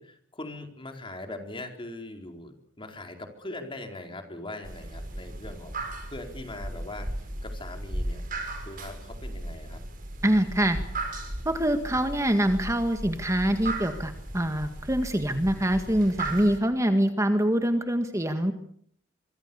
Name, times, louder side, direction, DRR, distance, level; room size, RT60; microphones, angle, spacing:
voice 1, 0.0-5.8 6.1-8.2 8.7-9.8 10.2-10.5, left 2 dB, 25° left, 5 dB, 4.3 m, -41 dB
sound 1, 4.6-16.6, right 2 dB, 45° right, 5.9 m, -36 dB
voice 2, 10.2-10.8 11.5-18.5, right 1 dB, 15° right, 7 dB, 1.8 m, -25 dB
25.5 x 24.5 x 7.1 m, 0.65 s
head